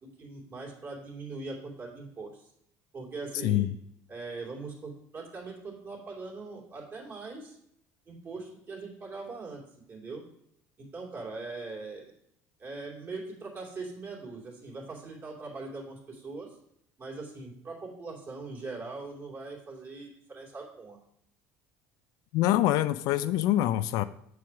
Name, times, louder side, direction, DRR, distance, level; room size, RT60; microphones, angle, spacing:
voice 1, 0.0-2.5 2.9-3.7 4.1-7.6 8.1-9.6 9.9-10.2 10.8-12.1 12.6-16.6 17.0-21.0, right 3 dB, 35° right, -2 dB, 2.6 m, -41 dB
voice 2, 3.4-3.7 22.3-24.0, left 14 dB, 65° left, 13 dB, 0.4 m, -25 dB
6.9 x 4.7 x 5.9 m, 0.73 s
cardioid pair, 120°, 7 cm